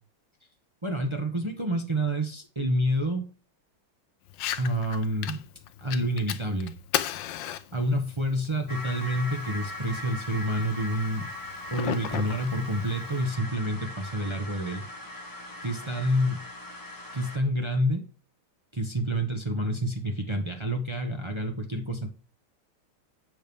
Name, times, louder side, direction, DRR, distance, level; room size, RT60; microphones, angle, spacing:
voice 1, 0.8-3.2 4.6-5.4 5.8-6.7 7.1-11.3 11.7-14.8 15.6-16.4 17.1-18.0 18.7-22.1, equal, 30° right, 2 dB, 0.5 m, -28 dB
Fire, 4.3-13.3, left 12 dB, 70° left, 1.2 m, -37 dB
sound 1, 8.7-17.4, left 1 dB, 25° left, 0.4 m, -40 dB
8.8 x 3.6 x 6.8 m, 0.38 s
omnidirectional pair, 2.3 m